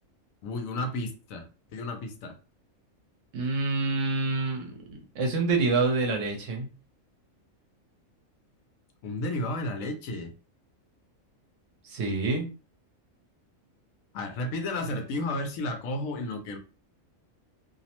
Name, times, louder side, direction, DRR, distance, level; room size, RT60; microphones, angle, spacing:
voice 1, 0.4-1.5 1.7-2.4 9.0-10.3 14.1-16.6, left 2 dB, 75° left, 6 dB, 1.0 m, -32 dB
voice 2, 3.3-6.7 11.8-12.5, right 3 dB, 70° right, 1 dB, 1.0 m, -27 dB
2.6 x 2.0 x 2.8 m, 0.33 s
omnidirectional pair, 1.4 m